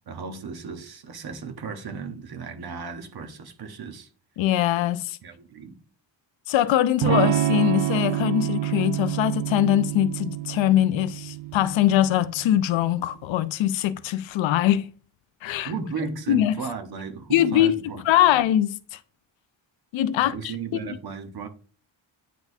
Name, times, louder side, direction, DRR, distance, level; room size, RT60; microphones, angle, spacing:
voice 1, 0.1-4.1 5.2-5.8 15.6-18.4 20.2-21.5, right 5 dB, 55° right, 1.0 m, -35 dB
voice 2, 4.4-5.2 6.5-14.9 15.4-15.7 16.3-16.5 17.3-17.8 18.1-19.0 19.9-20.5, left 12 dB, 80° left, 0.5 m, -22 dB
Electric guitar / Strum, 7.0-12.7, right 14 dB, 80° right, 0.5 m, -27 dB
9.2 x 4.0 x 2.6 m
wide cardioid pair, 135°, 45 cm